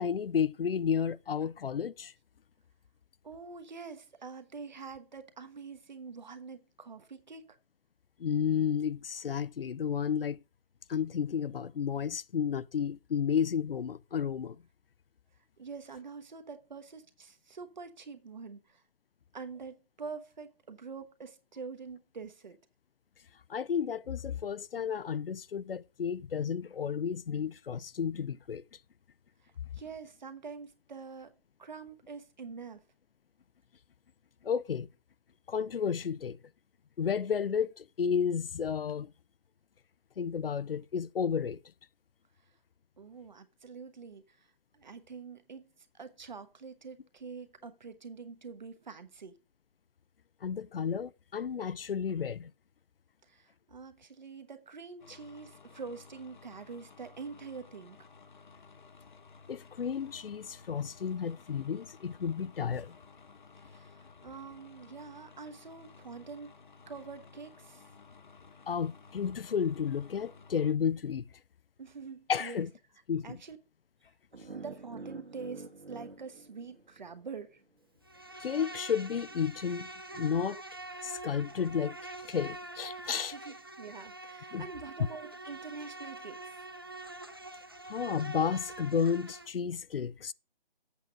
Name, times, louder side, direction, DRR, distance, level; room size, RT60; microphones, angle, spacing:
voice 1, 0.0-2.1 8.2-10.4 10.9-14.6 23.5-28.6 34.4-34.9 35.5-36.4 37.0-39.1 40.2-41.6 50.4-52.5 59.5-62.9 68.7-71.3 72.3-72.7 73.1-73.4 78.4-80.6 81.0-83.3 84.5-84.7 87.8-90.3, left 7 dB, 75° left, 0.5 m, -32 dB
voice 2, 3.2-7.6 15.6-18.8 19.3-22.6 29.4-32.8 43.0-44.5 44.7-49.3 53.2-58.0 63.6-66.5 66.9-67.8 71.8-72.7 73.2-73.6 74.5-77.6 83.3-86.7, right 5 dB, 50° right, 1.2 m, -45 dB
sound 1, 55.0-70.7, left 5 dB, 55° left, 0.9 m, -55 dB
sound 2, 74.3-77.4, right 3 dB, 90° right, 1.8 m, -47 dB
Insect, 78.0-89.5, right 2 dB, 25° right, 0.5 m, -45 dB
8.2 x 6.0 x 5.0 m
figure-of-eight pair, 170°, 29 cm